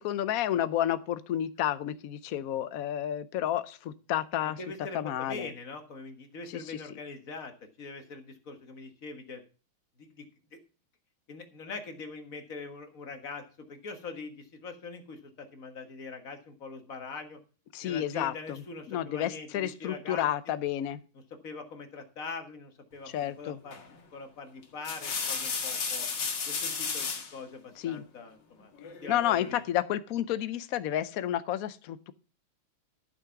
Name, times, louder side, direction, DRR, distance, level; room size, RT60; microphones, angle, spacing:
voice 1, 0.0-4.6 4.9-5.5 6.5-6.8 17.7-21.0 23.1-23.6 27.8-28.0 29.1-32.1, left 11 dB, 85° left, 13 dB, 0.7 m, -31 dB
voice 2, 4.5-9.4 10.0-10.3 10.5-10.6 11.3-17.4 17.8-20.3 21.4-23.1 23.4-23.8 24.1-26.1 26.5-28.7 29.0-29.6, left 4 dB, 40° left, 6 dB, 1.9 m, -43 dB
sound 1, 23.7-24.0 24.6-27.3 28.8-29.5, left 5 dB, 60° left, 2.4 m, -33 dB
12.0 x 6.5 x 5.8 m, 0.35 s
omnidirectional pair, 2.3 m